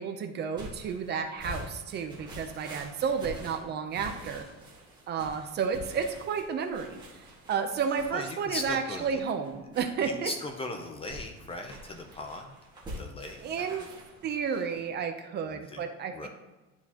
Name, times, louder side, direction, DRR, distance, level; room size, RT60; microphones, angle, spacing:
voice 1, 0.0-4.5 5.1-7.2 7.5-10.3 13.4-13.9 14.2-16.3, right 6 dB, 35° right, 7 dB, 0.5 m, -32 dB
sound 1, 0.5-14.9, equal, 15° right, 1.7 m, -46 dB
voice 2, 8.1-9.2 10.0-12.5 13.0-13.4 15.4-15.9 16.1-16.3, left 2 dB, 20° left, 4 dB, 0.5 m, -38 dB
11.0 x 4.6 x 2.9 m, 1.1 s
cardioid pair, 170°, 31 cm